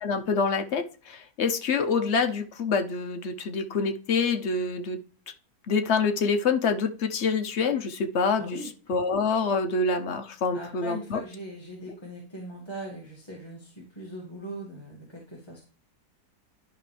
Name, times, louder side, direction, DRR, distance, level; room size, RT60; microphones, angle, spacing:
voice 1, 0.0-5.0 5.7-8.6 8.9-11.2, left 4 dB, 50° left, 6 dB, 1.0 m, -26 dB
voice 2, 8.4-8.7 10.5-15.6, right 1 dB, 15° left, -4 dB, 1.9 m, -40 dB
11.5 x 5.1 x 3.3 m, 0.40 s
omnidirectional pair, 1.7 m